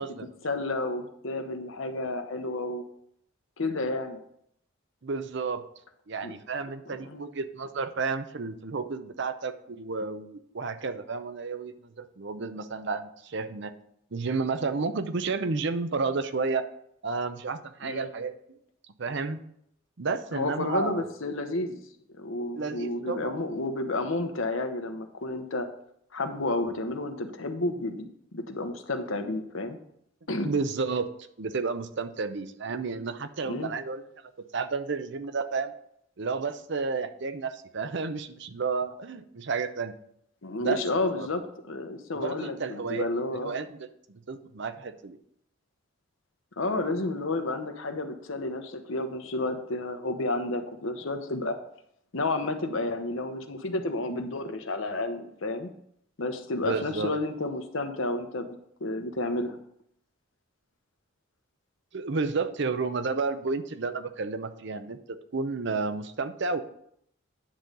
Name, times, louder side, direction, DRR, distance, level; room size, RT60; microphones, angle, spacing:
voice 1, 0.4-2.8 3.6-4.2 6.2-6.3 6.9-7.3 17.8-18.1 20.3-21.8 22.2-25.7 26.1-29.8 30.3-30.5 33.4-33.7 40.4-43.5 46.6-51.6 52.1-55.7 56.2-59.6, left 2 dB, 70° left, 7 dB, 1.0 m, -31 dB
voice 2, 5.0-5.7 6.1-13.7 14.1-16.7 17.0-18.3 19.0-19.4 20.0-21.1 22.6-23.3 30.4-31.1 31.4-34.0 34.5-35.7 36.2-39.9 40.6-40.8 41.2-41.3 42.1-43.1 43.4-45.2 56.6-57.1 61.9-66.6, right 4 dB, 55° right, 10 dB, 0.6 m, -31 dB
10.0 x 3.9 x 6.7 m, 0.72 s
head